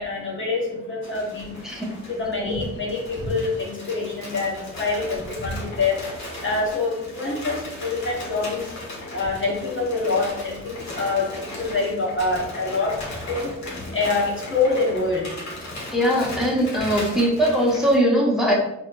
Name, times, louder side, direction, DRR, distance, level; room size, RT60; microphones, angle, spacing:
voice 1, 0.0-1.6 2.1-6.0 6.4-8.7 9.1-13.0 13.3-13.5 13.9-15.3, left 3 dB, 35° left, -3 dB, 1.4 m, -25 dB
sound 1, 1.0-17.9, left 1 dB, 55° left, 1.5 m, -37 dB
voice 2, 15.9-18.5, equal, ahead, -4 dB, 1.4 m, -20 dB
4.4 x 4.1 x 2.6 m, 0.87 s
hypercardioid pair, 45°, 34 cm